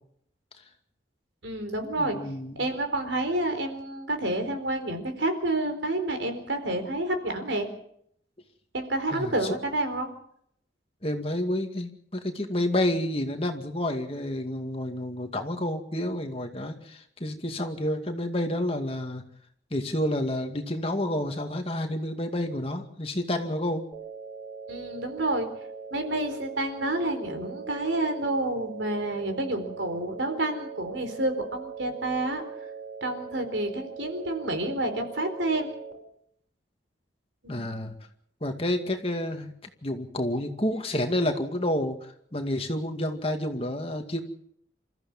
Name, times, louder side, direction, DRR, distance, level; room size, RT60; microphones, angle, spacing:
voice 1, 1.4-2.2 2.6-7.7 8.7-10.1 24.7-25.5 25.9-32.4 33.0-35.7 37.4-37.6, right 1 dB, 85° right, 7 dB, 4.2 m, -29 dB
voice 2, 2.0-2.6 9.1-9.5 11.0-19.2 19.7-23.8 37.5-37.9 38.4-39.5 39.8-44.2, left 1 dB, 30° left, 5 dB, 2.2 m, -29 dB
sound 1, 23.9-35.9, right 6 dB, ahead, 6.6 m, -41 dB
27.5 x 14.5 x 7.3 m, 0.70 s
head